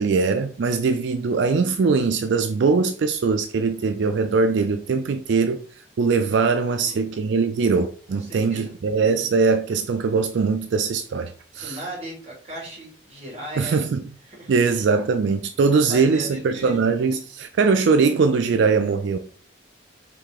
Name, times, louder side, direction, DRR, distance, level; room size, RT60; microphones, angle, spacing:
voice 1, 0.0-5.6 6.0-11.8 13.6-14.0 14.5-19.2, right 4 dB, 70° right, 0.4 m, -21 dB
voice 2, 6.6-7.0 8.1-8.7 11.5-13.8 14.3-14.5 15.7-16.8, right 1 dB, 35° right, 2.1 m, -37 dB
4.9 x 2.7 x 3.6 m
head